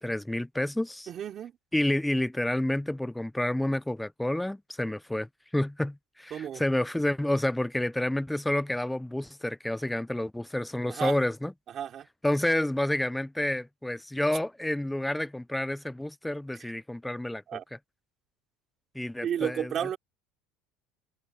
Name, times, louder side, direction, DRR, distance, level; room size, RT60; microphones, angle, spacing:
voice 1, 0.0-1.1 1.7-11.5 12.2-17.6 18.9-19.7, left 1 dB, 5° left, 0.5 m, -29 dB
voice 2, 1.1-1.5 6.3-6.6 10.9-11.2 11.7-12.1 16.7-16.8 17.5-17.6 19.2-20.0, right 9 dB, 35° right, 3.8 m, -32 dB
cardioid pair, 140°, 0 cm